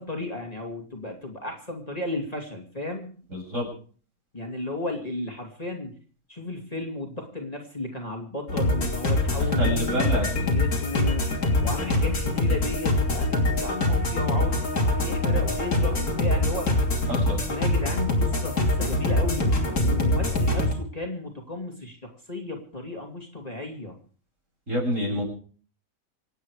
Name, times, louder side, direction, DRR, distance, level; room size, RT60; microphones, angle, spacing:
voice 1, 0.0-3.1 4.3-6.0 6.3-10.0 10.4-16.7 17.5-23.9, left 2 dB, 25° left, 2 dB, 2.7 m, -34 dB
voice 2, 3.3-3.7 9.6-10.3 17.1-17.4 24.7-25.2, equal, 55° right, 0 dB, 7.7 m, -27 dB
sound 1, 8.5-20.7, left 2 dB, 90° left, 3.5 m, -24 dB
27.0 x 9.3 x 4.9 m, 0.43 s
omnidirectional pair, 1.6 m